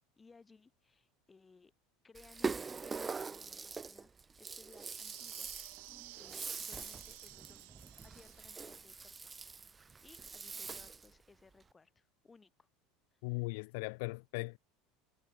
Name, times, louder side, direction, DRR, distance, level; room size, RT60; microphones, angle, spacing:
voice 1, 0.2-1.7 2.0-4.1 4.4-5.8 6.2-9.6 10.0-12.7 13.1-13.5, left 4 dB, 15° left, 7.6 m, -62 dB
Rattle (instrument), 2.1-11.1, right 5 dB, 15° right, 1.0 m, -43 dB
sound 1, 4.7-8.7, right 27 dB, 75° right, 2.5 m, -54 dB
voice 2, 13.2-14.6, left 29 dB, 70° left, 1.0 m, -38 dB
supercardioid pair, 130°, 0 cm